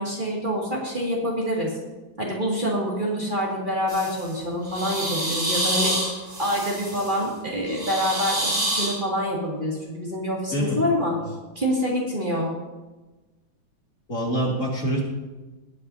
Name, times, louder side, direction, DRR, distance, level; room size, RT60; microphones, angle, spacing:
voice 1, 0.0-1.7 2.2-6.0 6.4-11.2 11.6-12.5, equal, 25° right, -4 dB, 2.3 m, -26 dB
sound 1, 3.9-4.3 4.7-7.2 7.7-8.9, right 1 dB, 65° right, 4.7 m, -27 dB
voice 2, 14.1-15.0, equal, 45° left, -2 dB, 2.4 m, -25 dB
20.0 x 9.4 x 2.7 m, 1.2 s
omnidirectional pair, 2.1 m